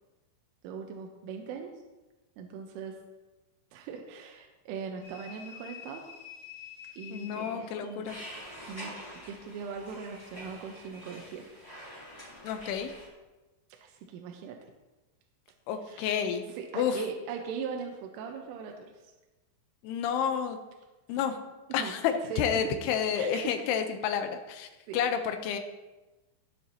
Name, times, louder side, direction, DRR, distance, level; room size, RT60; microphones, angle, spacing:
voice 1, 0.6-1.7 2.4-3.0 3.7-6.0 7.0-8.1 8.6-9.0 9.3-11.5 13.8-14.6 15.9-16.1 16.6-19.1 21.7-22.0 22.3-22.7 23.1-23.7 24.9-25.0, right 6 dB, 90° right, 2 dB, 3.5 m, -40 dB
sound 1, 5.0-8.4, left 7 dB, 65° left, 4.0 m, -48 dB
voice 2, 7.1-8.2 12.4-12.9 15.7-16.5 16.7-17.0 19.8-20.6 21.1-21.4 21.7-25.6, left 8 dB, 85° left, 6 dB, 2.4 m, -30 dB
sound 2, 8.0-13.1, equal, 5° left, 2.5 m, -46 dB
21.0 x 7.7 x 2.9 m, 1.1 s
omnidirectional pair, 5.6 m